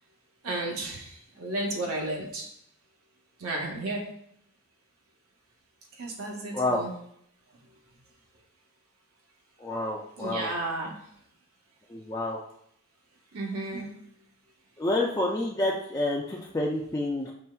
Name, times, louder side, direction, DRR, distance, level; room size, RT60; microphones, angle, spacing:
voice 1, 0.4-2.5 3.4-4.1 6.0-6.9 10.2-10.9 13.3-13.9, right 2 dB, 75° right, 0 dB, 1.0 m, -33 dB
voice 2, 9.6-10.5 11.9-12.4 14.8-17.3, left 1 dB, 15° left, -3 dB, 0.3 m, -28 dB
5.6 x 3.2 x 2.3 m, 0.69 s
head